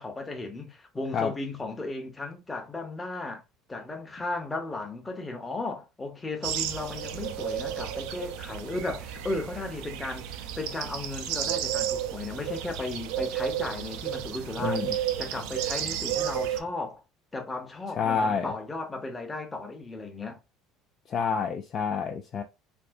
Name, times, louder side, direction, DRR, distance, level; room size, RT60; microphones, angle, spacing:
voice 1, 0.0-3.4 3.7-17.0 17.3-20.4, left 2 dB, 15° left, 0.8 m, -35 dB
sound 1, 6.4-16.6, right 10 dB, 80° right, 0.4 m, -32 dB
voice 2, 14.6-14.9 18.0-18.5 21.1-22.4, left 6 dB, 35° left, 0.3 m, -28 dB
3.3 x 2.6 x 2.6 m
cardioid pair, 150°, 0 cm